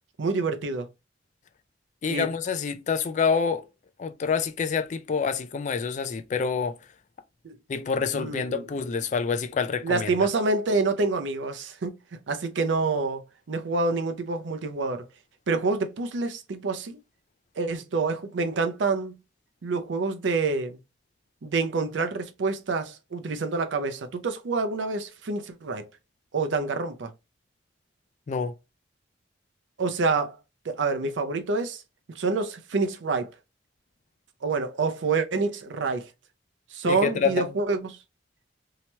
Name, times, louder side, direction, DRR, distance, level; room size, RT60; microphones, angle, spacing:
voice 1, 0.2-0.9 2.1-2.3 7.4-7.5 8.1-8.6 9.8-12.0 12.3-13.2 13.5-15.0 15.5-17.0 17.6-19.1 19.6-20.8 21.4-25.9 26.3-27.1 29.8-30.4 30.6-31.8 32.1-33.3 34.4-36.1 36.7-38.0, right 3 dB, 85° right, 0.5 m, -27 dB
voice 2, 2.0-3.7 4.0-6.8 7.7-10.1 28.3-28.5 36.9-37.5, left 5 dB, 40° left, 0.3 m, -27 dB
2.8 x 2.2 x 2.9 m
head